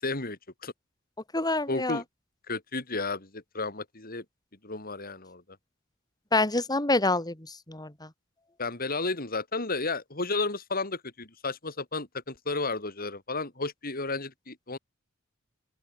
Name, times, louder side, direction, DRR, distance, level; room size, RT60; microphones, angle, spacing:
voice 1, 0.0-0.7 1.7-2.0 2.5-4.2 4.6-5.4 8.6-14.8, left 3 dB, 45° left, 4.6 m, -32 dB
voice 2, 1.3-2.0 6.3-7.3 7.7-8.1, left 2 dB, 20° left, 3.4 m, -26 dB
open air
head